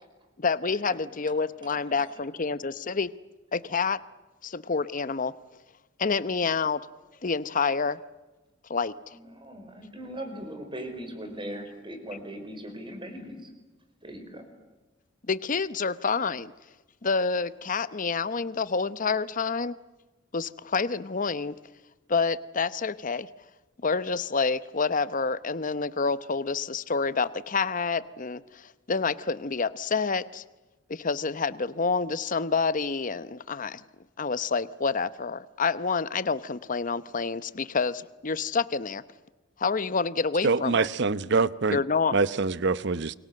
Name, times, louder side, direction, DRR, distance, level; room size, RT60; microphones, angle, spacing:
voice 1, 0.4-3.1 3.5-4.0 4.4-5.3 6.0-6.8 7.2-8.0 8.7-9.1 15.3-16.5 17.0-19.8 20.3-21.6 22.1-23.3 23.8-30.4 30.9-33.8 34.2-39.0 39.6-40.9 41.7-42.2, left 4 dB, 40° left, 0.8 m, -28 dB
voice 2, 1.7-2.2 9.1-13.5 14.0-14.4, right 1 dB, 25° right, 5.0 m, -40 dB
voice 3, 40.4-41.8 42.1-43.1, right 4 dB, 60° right, 0.9 m, -25 dB
29.0 x 23.5 x 7.7 m
head